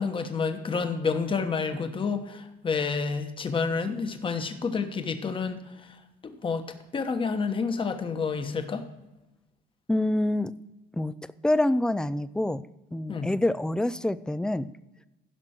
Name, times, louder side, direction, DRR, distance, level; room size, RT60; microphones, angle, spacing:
voice 1, 0.0-6.0 6.2-6.6 6.9-8.8 13.1-13.3, left 5 dB, 30° left, 7 dB, 1.2 m, -29 dB
voice 2, 9.9-10.5 10.9-11.1 11.4-14.7, left 1 dB, 5° left, 16 dB, 0.3 m, -26 dB
16.0 x 6.0 x 4.4 m, 1.0 s
cardioid pair, 110°, 17 cm